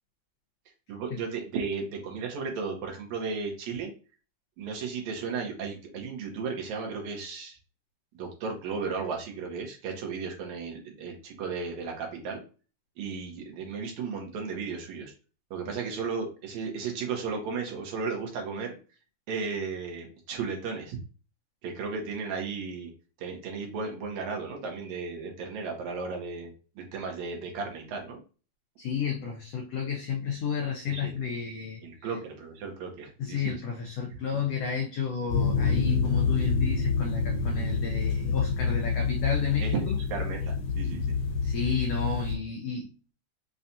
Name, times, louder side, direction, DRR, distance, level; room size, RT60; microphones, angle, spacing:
voice 1, 0.9-3.9 4.6-7.6 8.1-12.4 13.0-15.1 15.5-18.8 19.3-21.0 21.6-22.9 23.2-28.2 30.9-31.2 31.8-33.6 39.6-39.8 40.1-41.1, right 5 dB, 70° right, 1 dB, 2.2 m, -34 dB
voice 2, 28.8-31.8 33.2-40.0 41.4-42.9, left 6 dB, 80° left, 0 dB, 1.4 m, -32 dB
sound 1, 35.3-42.4, left 5 dB, 65° left, 2.1 m, -27 dB
5.8 x 2.3 x 2.6 m, 0.36 s
omnidirectional pair, 3.6 m